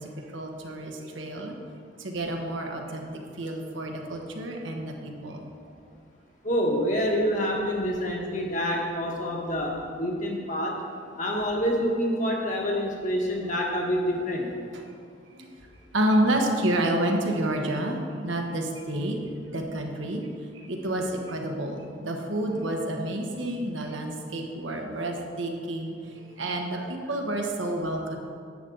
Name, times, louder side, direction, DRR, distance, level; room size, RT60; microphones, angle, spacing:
voice 1, 0.0-1.5 2.0-5.5 14.7-14.9 15.3-15.4 15.9-19.2 19.5-20.2 20.6-28.2, right 1 dB, 80° right, 2 dB, 1.2 m, -29 dB
voice 2, 6.4-10.7 11.2-14.5, equal, 40° left, -1 dB, 1.4 m, -27 dB
11.0 x 8.2 x 3.9 m, 2.3 s
head